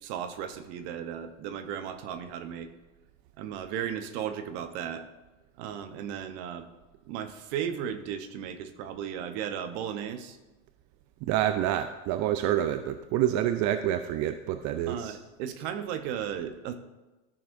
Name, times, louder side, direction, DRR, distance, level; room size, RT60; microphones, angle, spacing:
voice 1, 0.0-2.7 3.4-5.0 5.6-6.7 7.1-10.4 14.9-16.7, right 9 dB, 70° right, 9 dB, 1.0 m, -35 dB
voice 2, 11.2-15.2, right 11 dB, 55° right, 9 dB, 0.5 m, -27 dB
13.5 x 6.1 x 2.6 m, 1.1 s
supercardioid pair, 105°, 35 cm